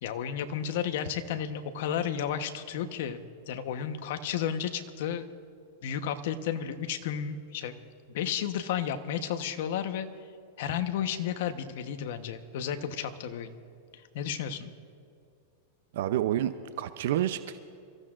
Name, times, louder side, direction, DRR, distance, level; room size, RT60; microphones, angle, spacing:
voice 1, 0.0-3.2 3.5-5.3 5.8-7.7 8.1-10.1 10.6-13.5 14.1-14.7, left 9 dB, 65° left, 8 dB, 1.0 m, -32 dB
voice 2, 15.9-17.6, right 12 dB, 70° right, 11 dB, 0.5 m, -29 dB
28.5 x 15.0 x 2.5 m, 2.4 s
supercardioid pair, 140°, 0 cm